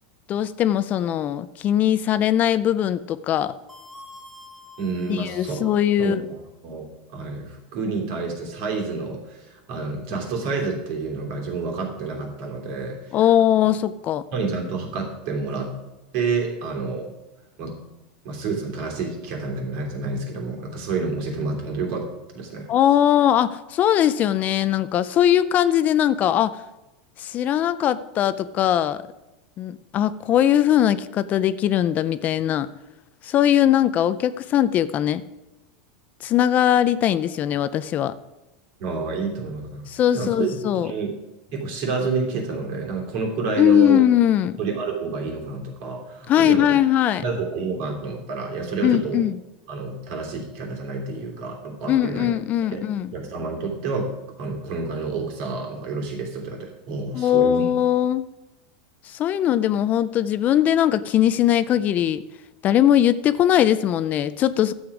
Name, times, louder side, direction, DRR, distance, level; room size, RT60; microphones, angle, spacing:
voice 1, 0.3-3.5 5.1-6.2 13.1-14.2 22.7-26.6 27.2-29.0 29.6-32.7 33.2-35.2 36.2-38.1 39.9-40.9 43.6-44.6 46.3-47.2 48.8-49.4 51.9-53.1 57.1-58.2 59.0-62.2 62.6-64.7, left 11 dB, 35° left, 14 dB, 0.4 m, -20 dB
sound 1, 3.7-6.1, left 1 dB, 5° right, 1.6 m, -47 dB
voice 2, 4.8-5.7 6.0-13.3 14.3-15.7 16.1-17.1 17.6-17.7 18.2-22.1 22.3-22.7 38.8-39.9 40.1-40.5 40.8-41.1 41.5-44.0 44.6-46.7 47.2-49.3 49.7-52.3 52.6-52.8 53.1-54.1 54.4-57.7, right 4 dB, 55° right, 1 dB, 3.1 m, -29 dB
12.0 x 7.9 x 4.9 m, 0.99 s
supercardioid pair, 135°, 5 cm